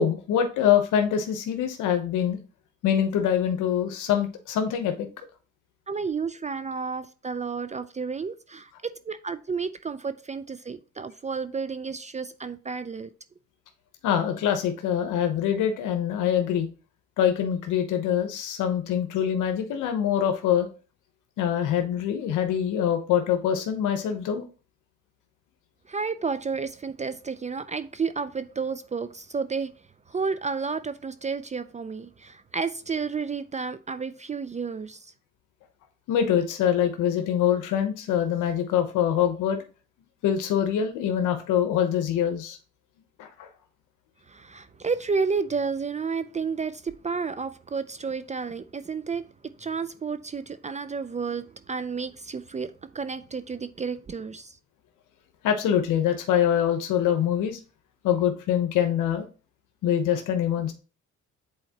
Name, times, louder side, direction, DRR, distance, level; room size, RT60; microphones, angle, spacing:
voice 1, 0.0-2.4 2.8-5.1 14.0-16.7 17.2-20.7 21.4-24.4 36.1-39.6 40.2-42.6 43.2-43.5 55.4-57.6 58.0-59.2 59.8-60.7, left 9 dB, 90° left, 0.9 m, -24 dB
voice 2, 5.9-13.1 25.9-29.7 30.1-35.1 44.3-54.6, right 5 dB, 25° right, 0.4 m, -31 dB
7.8 x 4.2 x 2.9 m
cardioid pair, 90°, 30 cm